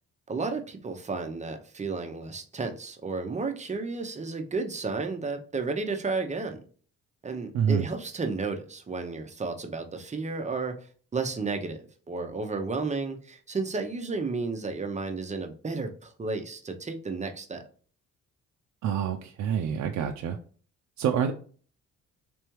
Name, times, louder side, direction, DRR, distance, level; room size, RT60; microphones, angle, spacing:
voice 1, 0.3-6.6 7.2-10.9 11.1-17.6, right 4 dB, 25° right, 5 dB, 0.7 m, -32 dB
voice 2, 7.5-7.9 18.8-20.4 21.0-21.3, right 8 dB, 65° right, 4 dB, 0.5 m, -27 dB
3.4 x 3.3 x 3.0 m, 0.43 s
cardioid pair, 90°, 30 cm